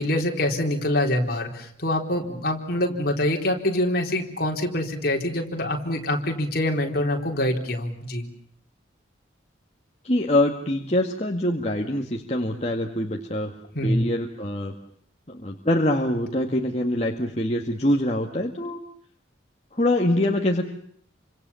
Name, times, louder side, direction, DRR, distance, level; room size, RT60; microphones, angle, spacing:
voice 1, 0.0-8.3 13.7-14.0, left 1 dB, 50° left, 2 dB, 4.1 m, -25 dB
voice 2, 10.0-13.5 13.8-14.7 15.3-18.8 19.7-20.6, left 1 dB, 35° left, 1 dB, 2.0 m, -24 dB
28.5 x 26.0 x 7.1 m, 0.64 s
head